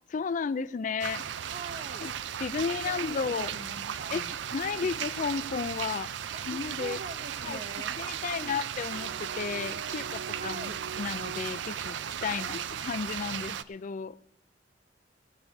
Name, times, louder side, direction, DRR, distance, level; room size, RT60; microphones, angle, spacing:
voice 1, 0.1-1.3 2.0-2.1 2.4-6.1 6.5-7.0 7.4-7.6 8.0-14.3, left 5 dB, 45° left, 18 dB, 0.3 m, -33 dB
sound 1, 1.0-13.6, right 9 dB, 75° right, 0.4 m, -36 dB
voice 2, 1.4-2.1 2.8-3.0 3.3-4.4 4.7-4.9 6.3-8.5 10.3-10.8 12.3-12.6, right 3 dB, 40° right, 10 dB, 0.8 m, -44 dB
17.5 x 8.0 x 5.3 m, 0.87 s
head